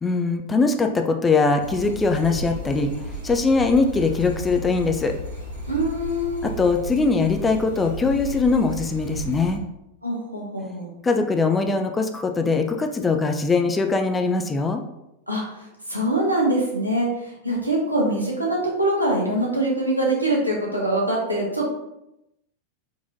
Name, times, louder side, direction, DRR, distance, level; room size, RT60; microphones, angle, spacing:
voice 1, 0.0-5.1 6.4-9.6 11.0-14.8, left 4 dB, 15° left, 5 dB, 0.3 m, -21 dB
sound 1, 1.6-9.6, right 1 dB, 70° right, 1.1 m, -34 dB
voice 2, 5.7-6.4 10.0-10.9 15.3-21.7, right 1 dB, 90° right, -3 dB, 0.9 m, -24 dB
3.8 x 2.9 x 2.6 m, 0.87 s
figure-of-eight pair, 90°, 0 cm